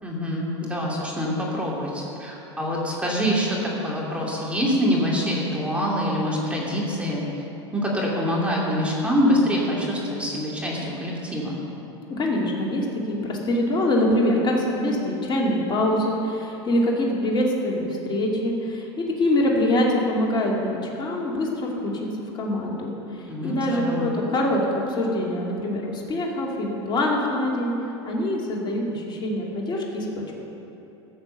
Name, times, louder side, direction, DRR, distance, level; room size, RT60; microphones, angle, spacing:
voice 1, 0.0-7.2 7.7-11.6 23.3-24.1, equal, 10° right, -4 dB, 2.9 m, -25 dB
voice 2, 12.2-22.1 22.3-27.7 28.0-30.3, left 1 dB, 30° left, -2 dB, 2.6 m, -24 dB
14.5 x 7.2 x 6.8 m, 2.9 s
hypercardioid pair, 95°, 15 cm